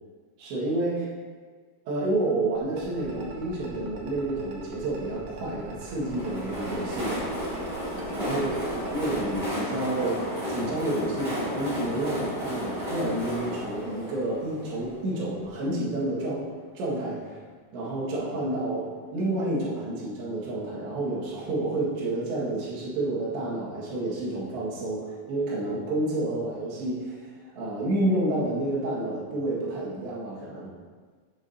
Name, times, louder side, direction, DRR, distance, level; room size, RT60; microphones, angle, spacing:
voice 1, 0.4-1.0 1.9-7.2 8.1-16.5 16.8-17.4 17.7-30.7, right 2 dB, 85° right, -5 dB, 4.0 m, -29 dB
sound 1, 2.6-9.4, right 5 dB, 65° right, 1.8 m, -44 dB
Train, 5.9-15.5, equal, 20° right, 2.2 m, -33 dB
11.0 x 8.4 x 2.8 m, 1.5 s
omnidirectional pair, 4.9 m